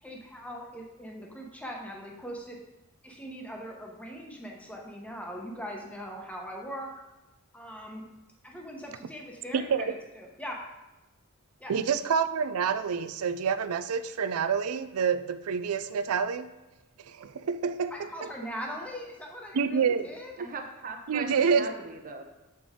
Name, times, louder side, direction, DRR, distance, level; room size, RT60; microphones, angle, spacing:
voice 1, 0.0-2.6 3.0-6.9 7.5-8.1 8.4-10.6 11.6-11.7 17.9-20.3 21.1-21.6, equal, 5° left, 0 dB, 0.9 m, -41 dB
voice 2, 9.5-9.9 11.7-16.5 17.1-18.3 19.5-20.1 21.1-21.7, right 6 dB, 85° right, 12 dB, 0.4 m, -27 dB
voice 3, 20.4-22.2, right 3 dB, 40° right, 4 dB, 0.8 m, -39 dB
6.8 x 5.3 x 3.7 m, 1.0 s
head